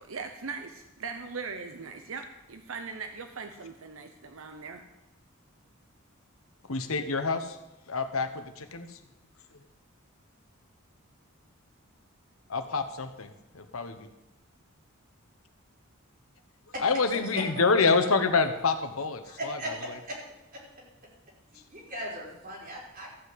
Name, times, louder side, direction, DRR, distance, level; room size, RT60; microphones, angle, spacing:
voice 1, 0.0-4.8, right 5 dB, 70° right, 6 dB, 0.9 m, -40 dB
voice 2, 6.6-7.6 7.9-9.0 12.5-14.1 16.8-19.6, left 4 dB, 80° left, 8 dB, 1.2 m, -27 dB
voice 3, 19.2-20.2 20.5-20.6 21.5-23.1, equal, 45° right, -4 dB, 5.1 m, -38 dB
14.0 x 6.0 x 7.8 m, 0.94 s
head